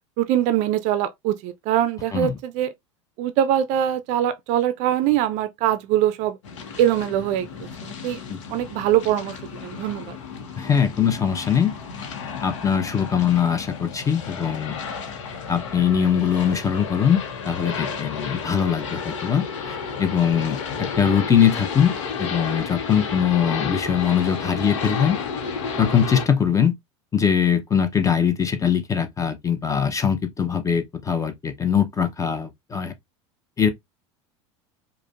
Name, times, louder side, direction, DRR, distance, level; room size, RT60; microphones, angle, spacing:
voice 1, 0.2-2.7 3.2-6.4 6.8-8.2 8.5-10.2, right 11 dB, 50° right, 0.4 m, -23 dB
sound 1, 6.4-26.3, left 5 dB, 75° left, 0.8 m, -32 dB
voice 2, 10.6-11.7 12.4-14.8 15.5-17.2 17.4-25.2 25.8-26.8 27.1-32.9 33.6-33.7, left 8 dB, 20° left, 0.7 m, -22 dB
4.8 x 2.1 x 2.3 m
hypercardioid pair, 80°, 16 cm